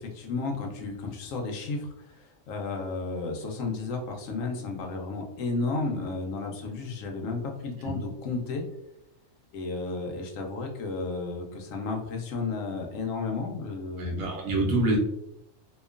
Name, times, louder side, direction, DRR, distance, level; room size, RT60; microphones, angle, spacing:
voice 1, 0.0-8.6 9.5-14.3, left 3 dB, 75° left, 2 dB, 1.0 m, -33 dB
voice 2, 14.0-15.0, right 2 dB, 75° right, -2 dB, 1.1 m, -26 dB
2.9 x 2.2 x 2.4 m, 0.81 s
omnidirectional pair, 1.4 m